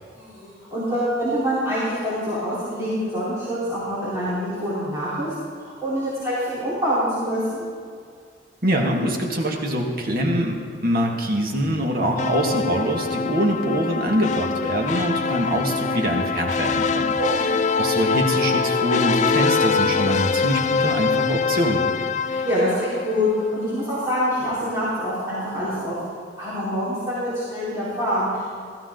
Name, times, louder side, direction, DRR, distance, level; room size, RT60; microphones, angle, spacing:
voice 1, 0.1-5.3 5.6-7.6 17.2-17.5 22.2-25.9 26.4-28.4, equal, 15° right, -13 dB, 4.3 m, -25 dB
voice 2, 8.6-17.5 17.8-21.8, right 1 dB, 55° right, 0 dB, 1.9 m, -24 dB
sound 1, 12.2-23.4, left 5 dB, 40° left, 0.4 m, -24 dB
15.5 x 14.5 x 3.9 m, 2.2 s
head